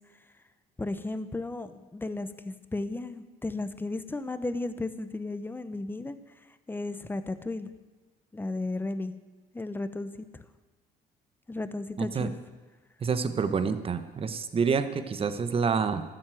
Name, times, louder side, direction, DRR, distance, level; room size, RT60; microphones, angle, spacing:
voice 1, 0.8-6.2 6.7-7.7 8.3-9.2 9.5-10.5 11.5-12.3, left 2 dB, 10° left, 12 dB, 0.9 m, -34 dB
voice 2, 12.0-12.3 13.0-16.0, right 5 dB, 35° right, 11 dB, 1.1 m, -28 dB
12.5 x 7.9 x 9.2 m, 1.3 s
cardioid pair, 110°, 17 cm